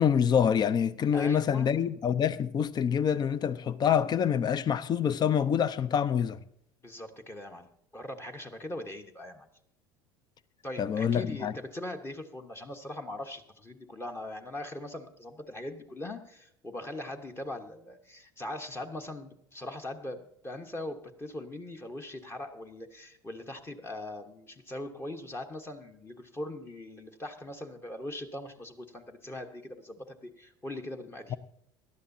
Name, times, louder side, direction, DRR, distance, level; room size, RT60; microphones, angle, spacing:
voice 1, 0.0-6.4 10.8-11.5, left 8 dB, 40° left, 0.7 m, -26 dB
voice 2, 1.1-1.7 6.8-7.7 7.9-9.5 10.6-31.4, left 1 dB, 20° left, 1.2 m, -41 dB
18.0 x 12.0 x 2.7 m
hypercardioid pair, 75°, 11 cm